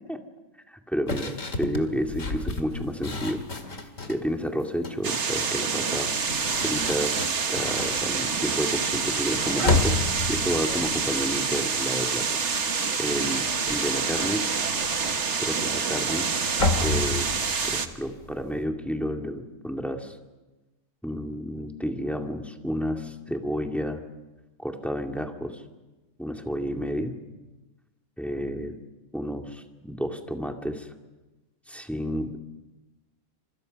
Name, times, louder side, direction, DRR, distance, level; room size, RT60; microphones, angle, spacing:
voice 1, 0.7-3.4 4.0-6.1 6.6-7.1 7.5-12.4 13.0-14.4 15.4-16.3 16.8-17.3 17.7-20.2 21.0-24.0 24.6-25.6 26.2-27.1 28.2-28.8 29.1-30.9 31.7-32.4, equal, ahead, 3 dB, 2.3 m, -30 dB
sound 1, 1.1-4.2 4.6-5.1 6.0-12.2 12.5-12.9 13.1-18.6, left 3 dB, 65° left, 2.5 m, -32 dB
sound 2, 5.0-17.9, right 5 dB, 55° right, 1.6 m, -27 dB
29.0 x 27.0 x 5.5 m, 1.1 s
omnidirectional pair, 1.5 m